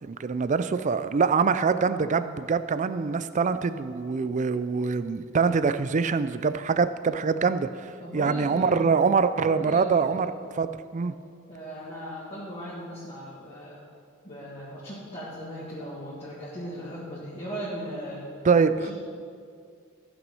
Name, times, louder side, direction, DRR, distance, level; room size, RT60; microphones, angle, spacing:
voice 1, 0.0-10.3 10.5-11.1 18.4-18.9, right 5 dB, 35° right, 12 dB, 0.4 m, -24 dB
voice 2, 8.0-8.8 9.5-10.3 11.5-13.8 14.2-18.3 18.7-18.9, equal, 25° left, -8 dB, 2.0 m, -38 dB
14.5 x 6.1 x 5.5 m, 2.2 s
head